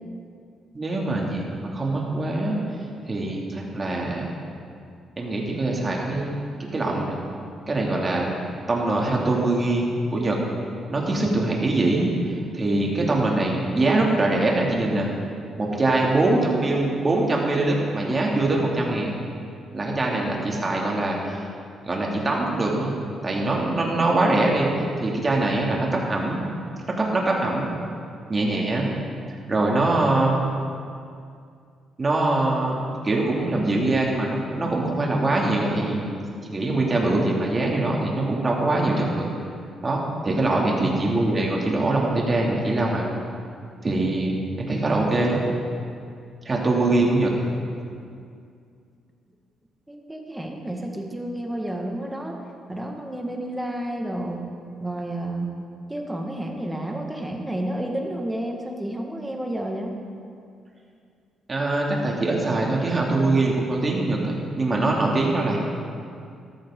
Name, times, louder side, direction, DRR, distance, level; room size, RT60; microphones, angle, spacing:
voice 1, 0.7-2.6 3.1-4.3 5.2-6.3 6.7-7.2 7.7-8.3 8.7-10.4 10.9-12.1 12.5-15.1 15.6-19.2 19.7-21.4 21.9-23.0 23.2-24.7 25.0-26.4 26.9-27.7 28.3-28.9 29.5-30.3 32.0-32.8 33.0-36.1 36.5-39.3 39.8-43.1 43.8-45.4 46.4-47.3 61.5-65.6, right 2 dB, 30° right, -2 dB, 2.5 m, -23 dB
voice 2, 40.7-41.0 49.9-52.4 52.7-54.5 54.8-55.5 55.9-59.9, right 1 dB, 10° right, 1 dB, 1.7 m, -30 dB
13.5 x 13.0 x 3.8 m, 2.4 s
cardioid pair, 90°, 0 cm